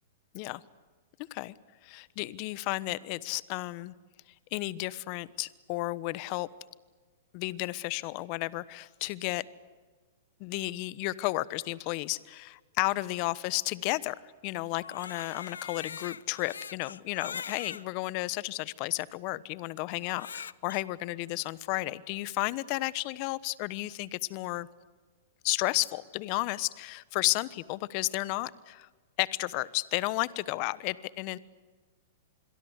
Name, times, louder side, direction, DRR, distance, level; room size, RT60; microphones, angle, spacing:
voice 1, 1.8-3.9 4.5-6.5 7.3-9.4 10.4-14.2 14.4-24.7 25.4-28.9 29.2-31.4, left 21 dB, 45° left, 19 dB, 1.1 m, -32 dB
Crying sobbing, 14.7-17.8 18.6-18.7 20.0-20.8, left 6 dB, 85° left, 0.7 m, -42 dB
26.5 x 22.5 x 8.2 m, 1.4 s
hypercardioid pair, 115°, 0 cm